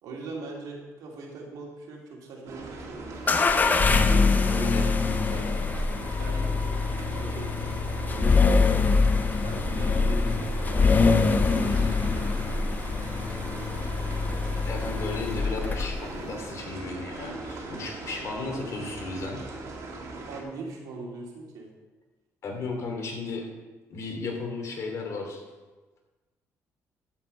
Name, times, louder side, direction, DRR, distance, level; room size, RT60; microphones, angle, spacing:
voice 1, 0.0-3.2 3.9-4.7 5.1-5.5 6.1-6.8 7.1-8.9 9.4-12.8 20.3-21.7, right 3 dB, 80° right, -2 dB, 2.7 m, -41 dB
sound 1, 2.5-20.4, right 2 dB, 60° right, 2.4 m, -39 dB
sound 2, 3.3-16.1, left 4 dB, 30° left, 0.7 m, -24 dB
voice 2, 4.4-4.9 14.7-19.4 22.4-23.5 23.9-25.4, left 3 dB, 55° left, 1 dB, 2.8 m, -34 dB
14.0 x 5.4 x 5.5 m, 1.2 s
cardioid pair, 110°, 6 cm